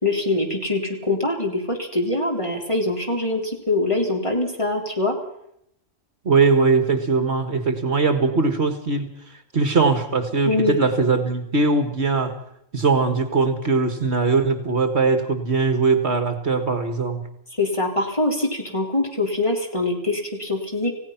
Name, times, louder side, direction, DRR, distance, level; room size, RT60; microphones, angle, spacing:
voice 1, 0.0-5.2 10.5-10.8 17.6-20.9, left 2 dB, 25° left, 1 dB, 3.7 m, -23 dB
voice 2, 6.2-9.2 9.5-12.4 12.7-17.2, right 4 dB, 55° right, 8 dB, 2.0 m, -20 dB
28.0 x 16.5 x 5.9 m, 0.74 s
omnidirectional pair, 1.3 m